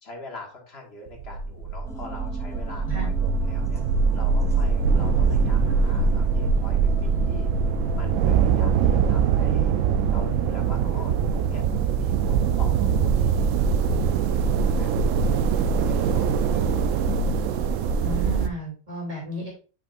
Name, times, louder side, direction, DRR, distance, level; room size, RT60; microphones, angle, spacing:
voice 1, 0.0-3.8 4.1-7.5 7.9-9.7 10.1-11.6 11.9-15.0 15.9-17.0, left 2 dB, 50° left, 1 dB, 1.8 m, -43 dB
sound 1, 1.1-18.5, right 5 dB, 75° right, 0.9 m, -22 dB
sound 2, 1.8-13.3, equal, 5° left, 0.5 m, -45 dB
voice 2, 18.0-19.5, equal, 30° right, -3 dB, 2.8 m, -33 dB
8.4 x 4.9 x 2.5 m, 0.36 s
omnidirectional pair, 1.4 m